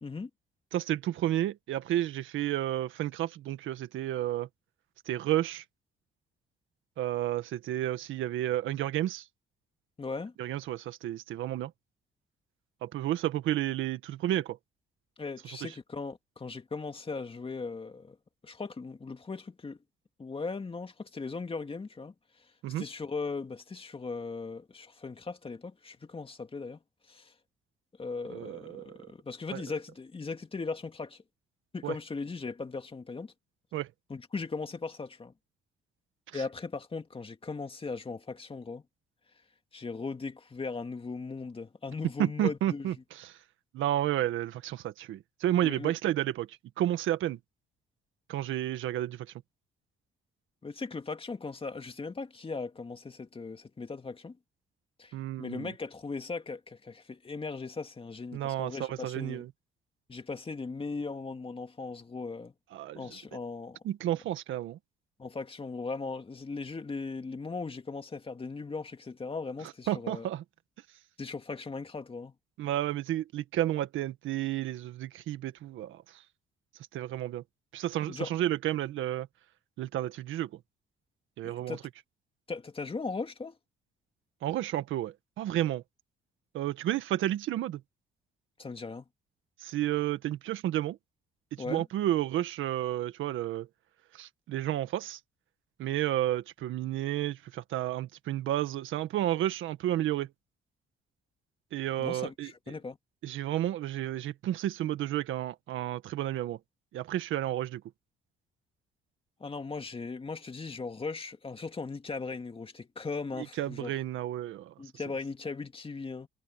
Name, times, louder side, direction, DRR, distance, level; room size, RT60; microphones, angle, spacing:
voice 1, 0.7-4.5 5.1-5.6 7.0-9.3 10.4-11.7 12.8-14.6 15.4-15.7 22.6-22.8 28.3-29.1 29.5-29.6 31.8-31.9 33.7-33.9 36.3-36.4 42.2-43.4 43.7-47.4 48.3-49.3 55.1-55.7 58.3-59.5 62.7-63.2 63.8-64.8 69.9-70.4 72.6-76.2 76.9-77.4 77.7-79.3 79.8-80.5 81.4-81.8 84.4-85.8 86.5-87.8 89.6-91.0 91.5-93.7 94.1-95.2 95.8-100.3 101.7-102.5 103.2-106.6 106.9-107.8 113.4-114.7, right 13 dB, 85° right, 1.7 m, -31 dB
voice 2, 10.0-10.3 15.2-18.2 18.4-19.8 20.2-22.1 22.8-26.8 27.1-27.3 28.0-31.2 31.7-33.3 34.1-35.3 36.3-38.8 39.7-42.9 45.6-45.9 50.6-54.4 55.0-59.4 60.1-62.5 62.9-63.8 65.2-70.3 71.2-72.3 78.1-78.3 81.4-81.8 82.5-83.6 88.6-89.1 91.6-91.8 102.0-103.0 109.4-113.9 114.8-116.3, left 4 dB, 25° left, 2.3 m, -38 dB
cardioid pair, 90°, 20 cm